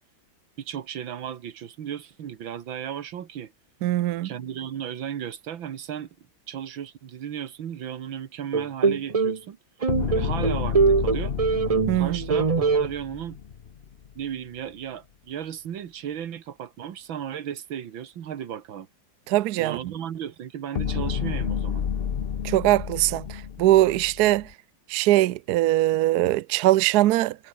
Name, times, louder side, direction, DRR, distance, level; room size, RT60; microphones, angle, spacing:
voice 1, 0.6-3.5 4.2-6.1 6.5-9.6 10.1-11.4 12.0-13.4 14.2-18.9 19.6-21.9, right 9 dB, 85° right, 2.2 m, -35 dB
voice 2, 3.8-4.3 11.9-12.2 19.3-19.8 22.4-24.5 24.9-27.4, right 15 dB, 70° right, 1.0 m, -21 dB
sound 1, 8.5-9.4 9.8-12.0 12.3-12.9, right 5 dB, 45° right, 0.4 m, -22 dB
sound 2, 9.9-14.2 20.8-24.5, left 7 dB, 50° left, 0.7 m, -30 dB
omnidirectional pair, 2.1 m